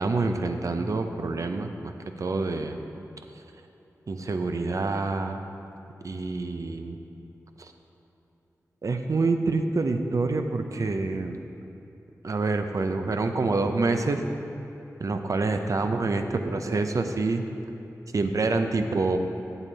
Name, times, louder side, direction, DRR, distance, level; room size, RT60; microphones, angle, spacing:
voice 1, 0.0-1.9 2.2-2.8 4.1-5.4 6.0-7.0 7.6-7.7 8.8-11.4 12.2-14.2 15.0-17.4 18.1-19.2, right 3 dB, 55° right, 6 dB, 0.6 m, -27 dB
8.0 x 7.4 x 4.0 m, 3.0 s
cardioid pair, 50°, 7 cm